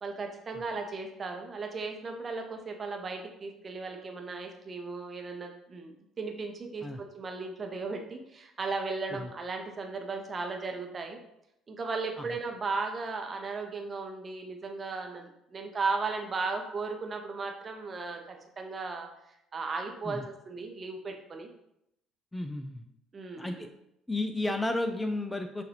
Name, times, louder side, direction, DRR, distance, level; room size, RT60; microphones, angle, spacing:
voice 1, 0.0-11.2 11.7-19.1 19.5-21.5 23.1-23.7, right 4 dB, 35° right, 3 dB, 0.8 m, -36 dB
voice 2, 22.3-22.9 23.4-23.7 24.1-25.6, left 2 dB, 10° left, 7 dB, 0.4 m, -32 dB
6.5 x 2.6 x 2.9 m, 0.81 s
hypercardioid pair, 55°, 0 cm